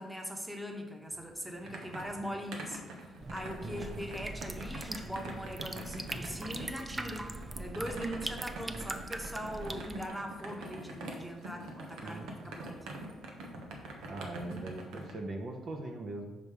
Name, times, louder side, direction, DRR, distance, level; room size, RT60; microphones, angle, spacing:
voice 1, 0.0-2.8 3.1-12.9, equal, 5° right, 2 dB, 1.1 m, -41 dB
sound 1, 1.1-15.1, right 1 dB, 90° right, 1.1 m, -45 dB
sound 2, 3.2-10.1, right 2 dB, 20° right, 0.4 m, -41 dB
voice 2, 3.6-4.0 12.0-12.3 14.0-16.3, right 2 dB, 55° right, 3 dB, 0.9 m, -41 dB
5.5 x 5.3 x 4.8 m, 1.1 s
cardioid pair, 90°, 0 cm